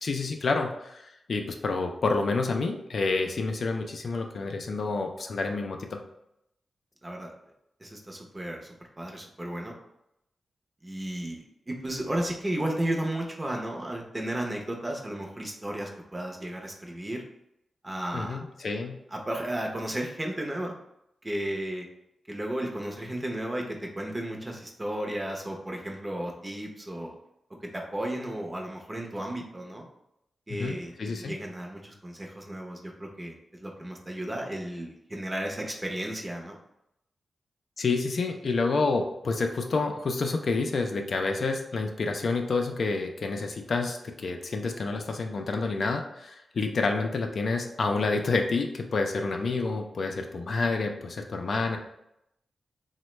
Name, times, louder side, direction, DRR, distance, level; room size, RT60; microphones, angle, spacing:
voice 1, 0.0-6.0 18.1-19.0 30.5-31.3 37.8-51.8, left 3 dB, 65° left, 4 dB, 0.3 m, -29 dB
voice 2, 7.8-8.7 9.0-9.8 10.8-17.2 17.8-18.4 19.1-20.8 21.2-21.9 22.3-27.1 27.7-29.8 30.5-36.6, right 1 dB, 25° right, 0 dB, 0.6 m, -34 dB
3.1 x 2.1 x 3.1 m, 0.82 s
cardioid pair, 75°, 0 cm